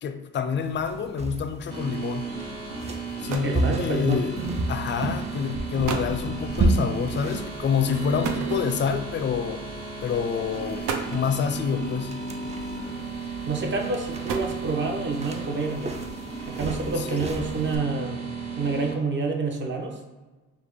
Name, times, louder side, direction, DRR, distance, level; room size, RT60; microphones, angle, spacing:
voice 1, 0.0-2.3 3.2-4.3 4.7-9.6 10.0-12.1 17.0-17.3, left 6 dB, 40° left, 9 dB, 0.4 m, -27 dB
sound 1, 0.6-17.8, right 2 dB, 20° right, 0.4 m, -33 dB
sound 2, 1.7-18.9, right 4 dB, 55° right, 1.4 m, -35 dB
sound 3, 3.1-3.7 4.7-4.9 5.5-5.6 5.8-6.2 8.2-9.1 10.0-10.2 10.7-11.3 12.6-13.1 13.9-15.0, right 5 dB, 85° right, 0.6 m, -33 dB
voice 2, 3.4-4.2 13.5-16.0 16.5-18.3 18.6-20.0, right 3 dB, 40° right, 2 dB, 0.8 m, -28 dB
4.7 x 2.2 x 3.5 m, 1.2 s
cardioid pair, 90°, 30 cm